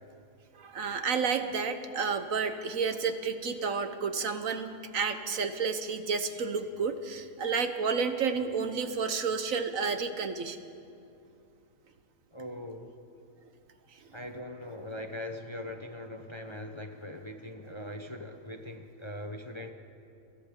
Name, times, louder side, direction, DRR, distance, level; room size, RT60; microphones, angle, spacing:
voice 1, 0.5-10.6 13.9-14.1, right 5 dB, 65° right, 8 dB, 1.4 m, -31 dB
voice 2, 12.3-12.9 14.1-19.7, left 1 dB, 25° left, 4 dB, 0.9 m, -41 dB
29.0 x 25.0 x 3.8 m, 2.6 s
omnidirectional pair, 1.5 m